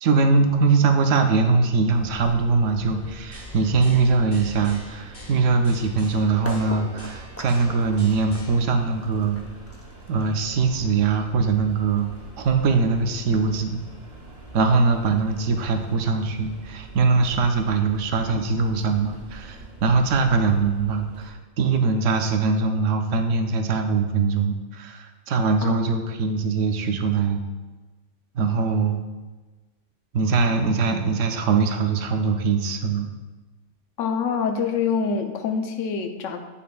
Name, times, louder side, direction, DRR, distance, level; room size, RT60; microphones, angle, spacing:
voice 1, 0.0-9.4 10.1-12.1 12.4-13.8 14.5-27.4 28.3-29.0 30.1-33.1, right 4 dB, 80° right, 5 dB, 0.9 m, -22 dB
sound 1, 1.9-21.3, right 2 dB, 55° right, 1.3 m, -44 dB
sound 2, 3.3-8.6, left 2 dB, 50° left, 1.9 m, -44 dB
sound 3, 6.4-12.3, equal, 20° left, 0.4 m, -41 dB
voice 2, 34.0-36.4, left 6 dB, 85° left, 7 dB, 1.0 m, -25 dB
8.4 x 5.4 x 2.2 m, 1.2 s
omnidirectional pair, 1.3 m